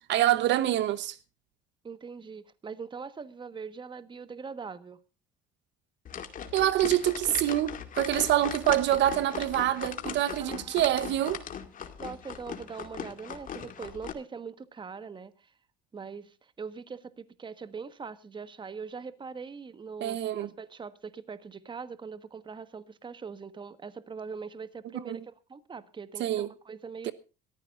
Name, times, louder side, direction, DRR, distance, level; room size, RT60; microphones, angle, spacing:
voice 1, 0.1-1.2 6.5-11.4 20.0-20.5 25.1-25.2 26.2-26.5 27.0-27.1, right 13 dB, 65° right, 1.0 m, -26 dB
voice 2, 1.8-5.0 10.4-11.0 12.0-15.5 15.9-27.1, right 5 dB, 25° right, 1.4 m, -42 dB
sound 1, 6.1-14.1, left 7 dB, 40° left, 2.2 m, -39 dB
22.5 x 14.5 x 2.5 m
cardioid pair, 115°, 20 cm